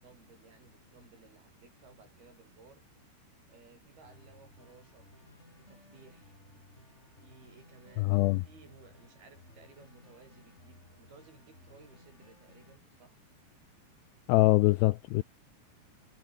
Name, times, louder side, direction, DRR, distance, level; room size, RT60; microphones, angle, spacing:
voice 1, 0.0-2.8 3.5-5.1 5.6-6.4 7.2-13.2, right 4 dB, 55° right, 9.0 m, -58 dB
sound 1, 4.0-12.8, left 1 dB, 15° left, 6.5 m, -59 dB
voice 2, 8.0-8.4 14.3-15.2, left 20 dB, 80° left, 2.5 m, -24 dB
omnidirectional pair, 5.3 m